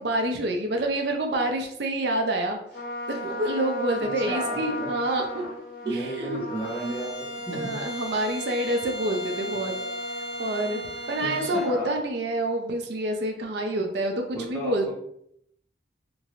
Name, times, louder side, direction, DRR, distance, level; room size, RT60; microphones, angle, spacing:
voice 1, 0.0-2.6 3.1-5.4 5.9-6.4 7.5-9.7 10.4-10.8 11.1-14.9, right 1 dB, 70° right, 3 dB, 0.4 m, -27 dB
Trumpet, 2.7-12.1, equal, 55° left, 0.7 m, -37 dB
voice 2, 4.0-4.9 5.8-7.1 7.5-7.7 11.2-11.9 14.3-14.9, right 1 dB, 10° left, -6 dB, 0.8 m, -33 dB
Bowed string instrument, 6.6-11.8, left 1 dB, 90° left, 0.5 m, -36 dB
2.9 x 2.6 x 2.8 m, 0.72 s
head